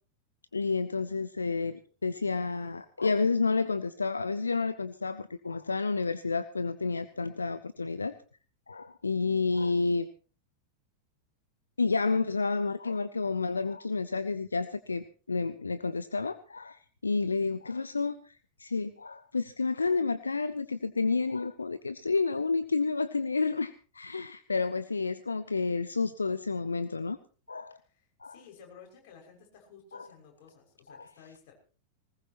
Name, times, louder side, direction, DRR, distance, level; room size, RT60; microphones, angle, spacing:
voice 1, 0.5-8.1 8.7-10.1 11.8-27.2 27.5-27.8 28.2-28.3 29.9-30.1 30.9-31.1, left 4 dB, 75° left, 14 dB, 0.6 m, -30 dB
voice 2, 27.7-31.5, left 6 dB, 50° left, 1 dB, 6.1 m, -54 dB
20.0 x 19.0 x 3.0 m, 0.38 s
figure-of-eight pair, 90°, 0 cm